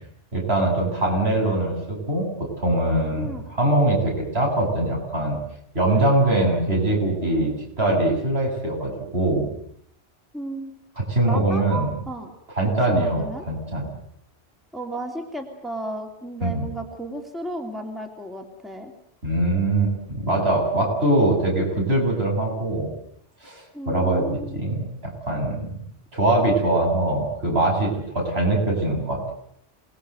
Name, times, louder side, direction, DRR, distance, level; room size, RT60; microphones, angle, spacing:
voice 1, 0.3-5.4 5.7-7.5 7.8-9.5 11.0-11.9 12.5-13.8 16.4-16.7 19.2-22.9 23.4-25.8 26.1-29.3, right 2 dB, 65° right, -1 dB, 7.8 m, -22 dB
voice 2, 10.3-10.7 11.3-12.3 12.9-13.4 14.7-18.9 23.7-24.6, right 1 dB, ahead, 2 dB, 3.0 m, -33 dB
27.5 x 20.0 x 8.1 m, 0.72 s
omnidirectional pair, 1.1 m